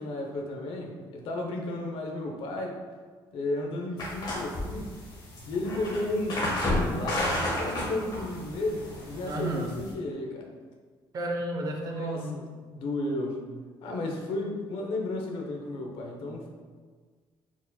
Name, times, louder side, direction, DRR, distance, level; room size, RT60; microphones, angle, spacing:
voice 1, 0.0-2.8 3.3-4.9 5.5-10.5 11.8-13.5 13.8-16.5, left 2 dB, 80° left, 1 dB, 0.7 m, -33 dB
sound 1, 4.0-9.9, left 1 dB, 50° left, 1.3 m, -32 dB
voice 2, 9.3-9.7 11.1-12.3, right 2 dB, 45° right, 1 dB, 0.7 m, -32 dB
4.6 x 4.0 x 2.2 m, 1.5 s
cardioid pair, 130°, 9 cm